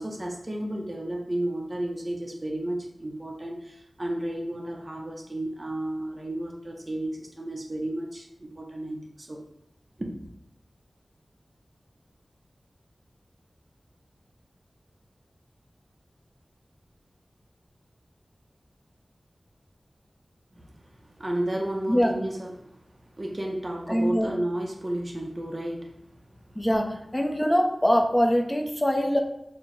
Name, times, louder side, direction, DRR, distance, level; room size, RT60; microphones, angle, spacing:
voice 1, 0.0-9.4 10.0-10.3 20.5-26.0 26.4-26.5, right 1 dB, 40° right, 0 dB, 0.7 m, -33 dB
voice 2, 23.9-24.3 26.5-29.2, equal, 15° left, 2 dB, 0.6 m, -23 dB
4.4 x 2.1 x 3.9 m, 0.81 s
wide cardioid pair, 60°, 0 cm